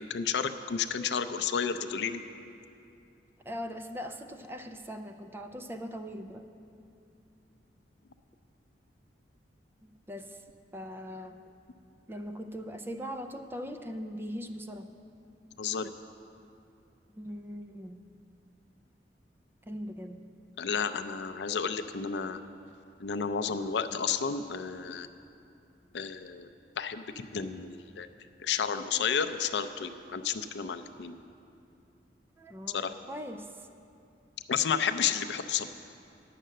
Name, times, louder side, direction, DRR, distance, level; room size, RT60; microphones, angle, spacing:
voice 1, 0.0-2.2 15.6-15.9 20.6-22.4 23.0-25.1 25.9-26.5 26.8-28.1 28.4-31.2 32.7-32.9 34.5-35.7, left 6 dB, 70° left, 9 dB, 0.5 m, -31 dB
voice 2, 3.4-6.5 9.8-10.4 10.7-11.4 12.1-14.9 17.2-18.0 19.7-20.2 32.4-33.5, equal, 15° right, 7 dB, 0.4 m, -40 dB
10.0 x 6.5 x 7.6 m, 2.6 s
head